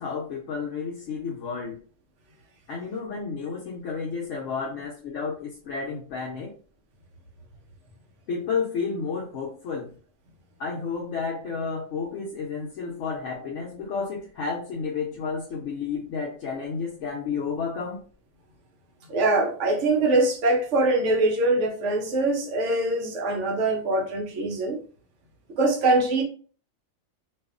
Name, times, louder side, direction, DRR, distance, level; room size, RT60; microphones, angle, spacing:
voice 1, 0.0-1.8 2.7-6.5 8.3-9.9 10.6-18.0, left 5 dB, 70° left, 0.9 m, -31 dB
voice 2, 19.1-24.8 25.6-26.2, right 2 dB, 65° right, 1.0 m, -23 dB
2.6 x 2.4 x 2.4 m
omnidirectional pair, 1.4 m